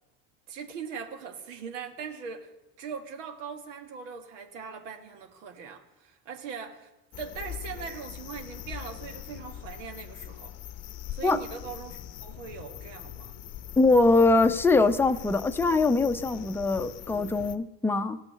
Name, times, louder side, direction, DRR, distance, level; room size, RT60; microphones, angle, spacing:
voice 1, 0.5-2.5 2.8-6.9 7.2-10.5 11.1-13.3, right 6 dB, 85° right, 1.6 m, -40 dB
sound 1, 7.1-17.6, left 11 dB, 45° left, 0.7 m, -42 dB
voice 2, 13.8-18.2, left 3 dB, 5° left, 0.6 m, -22 dB
16.5 x 6.1 x 6.6 m
supercardioid pair, 95°, 36 cm